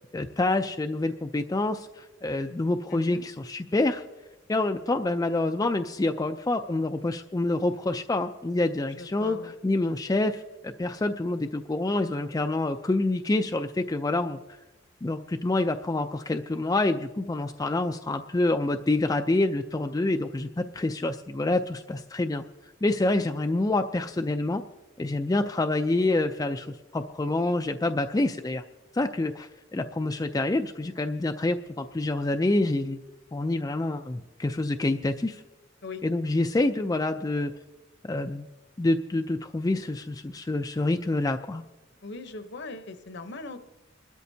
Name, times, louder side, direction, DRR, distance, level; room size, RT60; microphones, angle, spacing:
voice 1, 0.1-4.0 4.5-14.6 15.0-22.4 22.8-24.6 25.0-28.6 28.9-33.0 33.3-35.4 36.0-37.5 38.0-38.5 38.8-41.6, left 2 dB, 15° left, 6 dB, 0.3 m, -27 dB
voice 2, 2.9-3.2 9.0-9.5 23.1-23.2 35.8-36.0 42.0-43.6, left 3 dB, 55° left, 10 dB, 0.8 m, -40 dB
26.5 x 12.5 x 2.7 m, 1.1 s
head